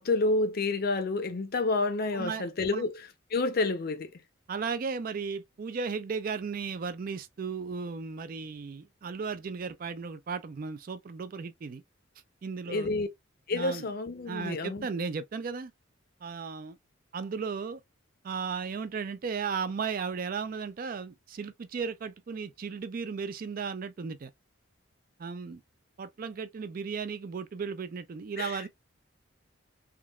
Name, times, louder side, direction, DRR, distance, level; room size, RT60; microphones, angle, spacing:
voice 1, 0.0-4.1 12.7-13.1 13.5-14.9 28.4-28.7, left 3 dB, 50° left, 0.5 m, -29 dB
voice 2, 2.1-2.8 4.5-11.8 12.4-12.9 13.5-13.9 14.3-15.7 16.2-16.8 17.1-17.8 18.2-24.3 25.2-25.6 26.0-28.7, right 5 dB, 45° right, 0.3 m, -35 dB
3.6 x 2.3 x 2.2 m
head